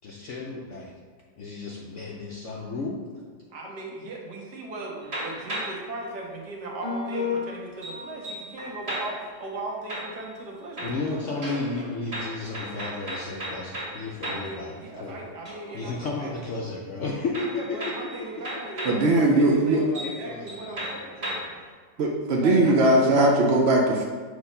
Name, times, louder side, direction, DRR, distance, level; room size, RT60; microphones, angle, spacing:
voice 1, 0.0-0.9 1.4-3.0 10.8-15.2 15.7-17.9 18.2-18.3 19.8-21.6, left 3 dB, 65° left, -2 dB, 0.7 m, -33 dB
voice 2, 3.5-11.5 14.2-16.3 17.5-21.2 22.4-22.8, right 2 dB, 70° right, -1 dB, 1.6 m, -38 dB
sound 1, 5.0-5.9 6.8-9.4 9.9-10.5 10.8-14.6 15.0-15.9 17.3-19.1 19.6-19.7 20.0-20.2 20.5-21.6, left 1 dB, 35° right, 1.9 m, -34 dB
voice 3, 18.8-19.8 22.0-24.0, right 1 dB, 90° right, 0 dB, 0.5 m, -20 dB
6.3 x 3.2 x 5.3 m, 1.5 s
omnidirectional pair, 1.9 m